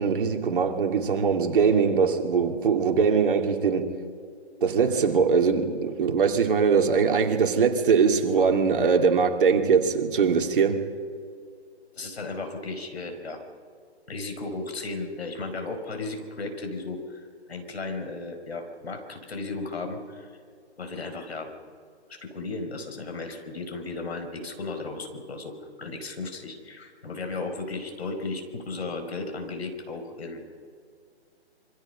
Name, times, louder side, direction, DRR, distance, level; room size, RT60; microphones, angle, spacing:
voice 1, 0.0-3.9 4.6-10.9, right 5 dB, 50° right, 2.6 m, -22 dB
voice 2, 11.9-13.4 14.1-20.3 20.8-21.5 22.1-30.4, left 3 dB, 65° left, 4.8 m, -35 dB
26.5 x 24.5 x 5.7 m
figure-of-eight pair, 145°, 34 cm